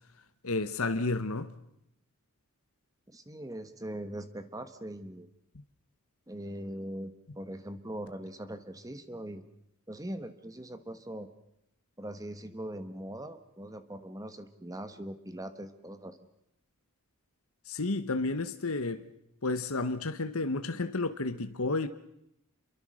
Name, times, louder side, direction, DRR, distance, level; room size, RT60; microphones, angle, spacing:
voice 1, 0.4-1.5 17.7-19.0 19.4-21.9, left 3 dB, 75° left, 1.2 m, -31 dB
voice 2, 3.1-5.3 6.3-9.4 9.9-11.3 12.0-16.2, right 1 dB, 15° right, 1.3 m, -41 dB
28.5 x 23.5 x 6.4 m
head